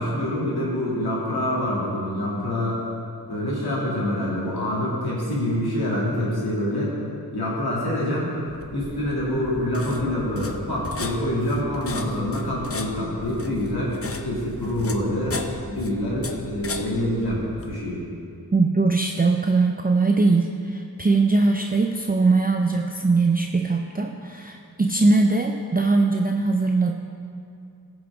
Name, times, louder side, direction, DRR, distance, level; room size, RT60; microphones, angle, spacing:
voice 1, 0.0-2.8 3.3-6.9 7.3-8.3 8.7-18.0, left 1 dB, 80° left, -6 dB, 2.4 m, -26 dB
sound 1, 8.5-17.8, left 3 dB, 40° left, 0.6 m, -36 dB
voice 2, 18.5-26.9, right 3 dB, 25° right, 2 dB, 0.5 m, -21 dB
15.5 x 6.1 x 3.6 m, 2.5 s
wide cardioid pair, 50°, 37 cm